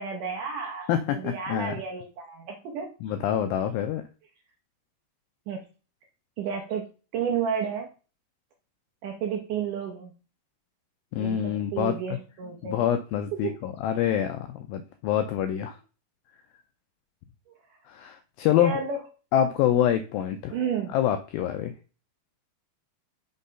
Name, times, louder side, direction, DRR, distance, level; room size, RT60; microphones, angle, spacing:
voice 1, 0.0-2.9 5.5-5.6 6.4-6.9 7.1-7.9 9.0-10.1 11.2-12.9 13.4-13.6 17.5-17.6 18.6-19.0 20.5-21.0, right 6 dB, 75° right, 1 dB, 2.0 m, -31 dB
voice 2, 0.9-1.8 3.0-4.0 11.1-12.0 12.6-15.8 17.9-18.7 19.3-20.5 20.9-21.7, left 10 dB, 80° left, 8 dB, 2.1 m, -26 dB
6.1 x 4.0 x 5.5 m, 0.36 s
omnidirectional pair, 4.6 m